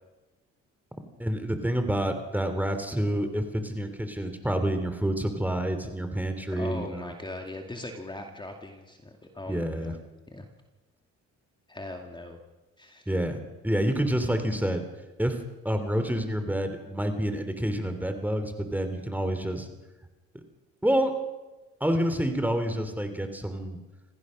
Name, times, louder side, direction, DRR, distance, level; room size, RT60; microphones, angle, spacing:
voice 1, 1.2-7.1 9.5-9.9 13.1-13.4 13.6-14.8 15.2-19.7 20.8-21.1 21.8-23.8, right 1 dB, 5° right, 7 dB, 2.9 m, -28 dB
voice 2, 6.5-10.0 10.3-10.5 11.7-12.4 12.8-13.1, left 2 dB, 15° left, 3 dB, 2.4 m, -40 dB
26.5 x 15.5 x 6.4 m, 1.1 s
cardioid pair, 90°, 30 cm